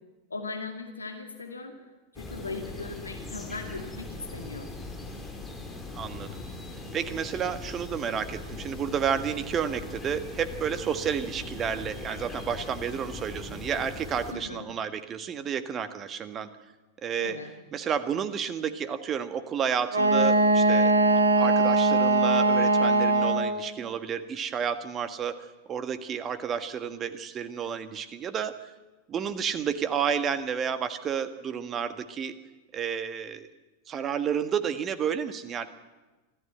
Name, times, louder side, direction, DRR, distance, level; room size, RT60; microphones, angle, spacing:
voice 1, 0.3-1.7 2.1-4.7 14.3-14.7 17.2-17.5, left 3 dB, 75° left, 5 dB, 2.2 m, -38 dB
sound 1, 2.2-14.3, left 2 dB, 10° left, 3.9 m, -40 dB
voice 2, 5.9-6.4 6.9-16.5 17.0-17.4 17.7-20.9 21.4-25.3 25.7-28.5 29.1-32.3 32.7-33.5 33.9-35.7, right 7 dB, 25° right, 11 dB, 1.5 m, -31 dB
Wind instrument woodwind instrument, 19.9-23.6, right 2 dB, 80° right, 2.1 m, -21 dB
25.5 x 14.5 x 7.8 m, 1.2 s
figure-of-eight pair, 90°, 0 cm